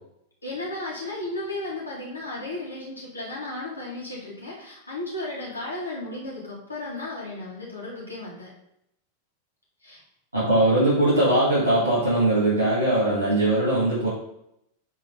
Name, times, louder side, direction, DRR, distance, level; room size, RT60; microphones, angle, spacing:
voice 1, 0.4-8.5 9.8-10.0, left 2 dB, 80° left, -5 dB, 2.1 m, -34 dB
voice 2, 10.3-14.1, right 1 dB, 80° right, -10 dB, 2.6 m, -21 dB
7.3 x 3.7 x 3.8 m, 0.77 s
figure-of-eight pair, 90°, 0 cm